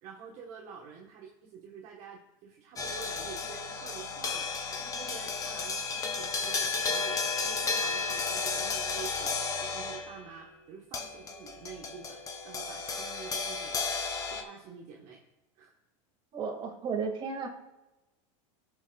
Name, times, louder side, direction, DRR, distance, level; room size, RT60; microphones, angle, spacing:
voice 1, 0.0-13.8 14.2-15.2 15.5-15.8, right 7 dB, 45° right, -1 dB, 1.3 m, -48 dB
sound 1, 2.8-10.2 10.9-14.4, left 4 dB, 20° left, 1.0 m, -33 dB
voice 2, 16.3-17.5, right 5 dB, 30° right, 1 dB, 2.1 m, -33 dB
15.5 x 7.1 x 2.4 m, 1.0 s
supercardioid pair, 140°, 17 cm